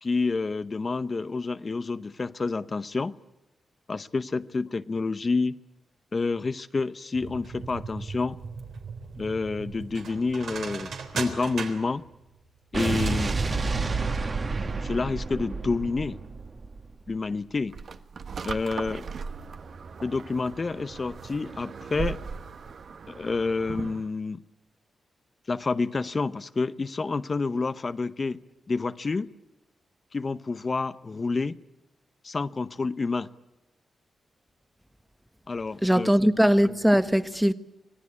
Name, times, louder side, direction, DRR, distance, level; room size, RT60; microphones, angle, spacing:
voice 1, 0.0-3.1 3.9-5.6 6.1-8.4 9.2-12.0 12.7-13.4 14.8-16.2 17.1-17.7 18.4-19.1 20.0-22.2 23.1-24.4 25.5-28.4 28.7-29.3 30.1-31.6 32.2-33.3 35.5-36.3, left 4 dB, 40° left, 0.8 m, -29 dB
sound 1, 7.1-14.3 14.5-14.6, right 5 dB, 80° right, 3.6 m, -38 dB
Explosion, 12.7-17.1, right 3 dB, 45° right, 1.8 m, -29 dB
sound 2, 17.7-24.1, right 6 dB, 65° right, 1.3 m, -38 dB
voice 2, 35.8-37.5, equal, 5° right, 1.3 m, -20 dB
25.5 x 18.0 x 9.8 m
cardioid pair, 75°, 0 cm